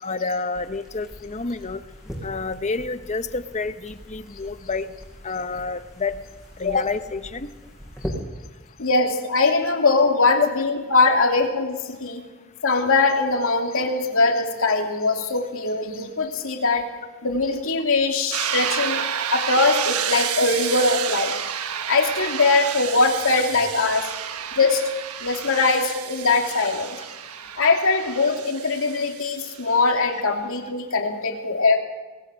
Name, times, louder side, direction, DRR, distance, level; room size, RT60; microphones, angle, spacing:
voice 1, 0.0-1.8 2.2-4.9 5.2-6.2 6.6-7.5, left 4 dB, 30° left, 11 dB, 0.9 m, -28 dB
sound 1, 0.5-8.1, equal, ahead, 5.9 m, -41 dB
voice 2, 8.8-12.2 12.6-16.9 17.2-19.0 19.3-21.3 21.9-24.1 24.5-24.9 25.2-27.0 27.6-31.8, left 3 dB, 65° left, 3 dB, 2.9 m, -21 dB
sound 2, 18.3-30.0, right 8 dB, 90° right, 1.3 m, -30 dB
25.0 x 20.0 x 6.4 m, 1.2 s
head